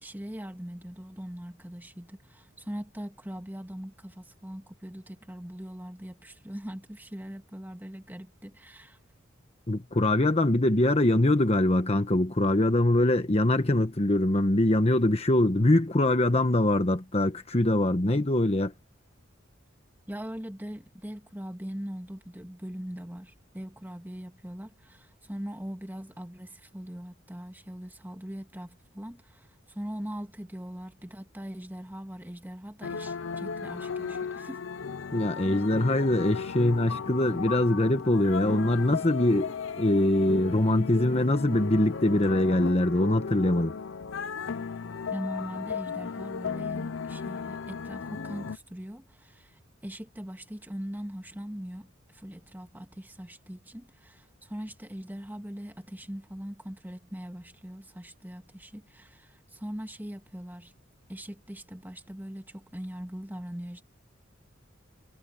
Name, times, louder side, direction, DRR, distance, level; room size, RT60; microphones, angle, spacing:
voice 1, 0.0-9.0 20.1-34.6 45.1-60.7 61.1-63.8, equal, 10° right, 2.2 m, -41 dB
voice 2, 9.7-18.7 35.1-43.7, left 1 dB, 30° left, 1.2 m, -23 dB
sound 1, 32.8-48.6, left 5 dB, 70° left, 0.6 m, -35 dB
head